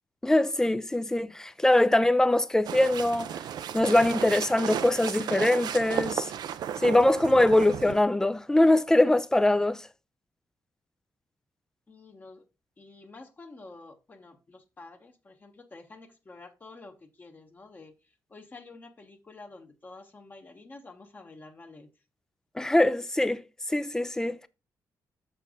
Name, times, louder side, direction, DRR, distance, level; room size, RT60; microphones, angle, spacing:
voice 1, 0.2-3.3 3.7-6.3 6.8-9.9 22.6-23.4 23.7-24.5, left 1 dB, 10° left, 0.4 m, -23 dB
sound 1, 2.7-8.0, right 9 dB, 75° right, 0.5 m, -34 dB
voice 2, 11.9-12.5 12.8-18.0 18.3-21.9, left 3 dB, 25° left, 1.0 m, -49 dB
6.7 x 6.6 x 3.7 m
wide cardioid pair, 165°, 7 cm